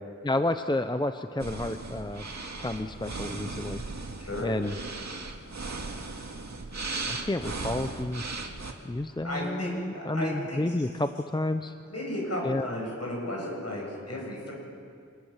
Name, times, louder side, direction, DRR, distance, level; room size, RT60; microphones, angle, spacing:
voice 1, 0.2-2.3 2.6-3.8 4.4-4.7 7.1-8.3 8.8-11.7 12.4-12.7, left 1 dB, 15° left, 8 dB, 0.7 m, -30 dB
sound 1, 1.4-8.7, right 3 dB, 65° right, 2.2 m, -37 dB
voice 2, 4.2-4.5 9.2-10.9 11.9-14.5, left 1 dB, 55° left, -2 dB, 7.6 m, -34 dB
26.5 x 20.5 x 7.4 m, 2.3 s
wide cardioid pair, 80°, 29 cm